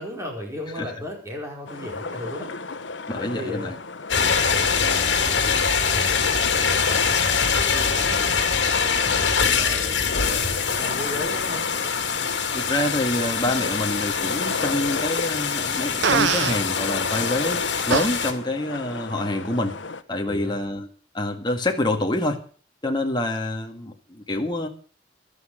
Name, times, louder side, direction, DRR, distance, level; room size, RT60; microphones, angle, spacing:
voice 1, 0.0-2.5 3.2-3.7 4.2-8.2 8.5-11.7 20.2-20.6, left 1 dB, 15° right, 4.9 m, -36 dB
sound 1, 1.7-20.0, left 3 dB, 80° left, 1.1 m, -34 dB
voice 2, 3.1-3.8 12.5-19.8 20.1-20.9 21.1-22.4 22.8-24.7, left 1 dB, 25° left, 1.8 m, -26 dB
sound 2, 4.1-18.3, left 6 dB, 65° left, 2.5 m, -24 dB
Fart, 16.0-16.6 17.9-18.1, right 6 dB, 70° right, 0.6 m, -21 dB
15.5 x 12.5 x 5.1 m
head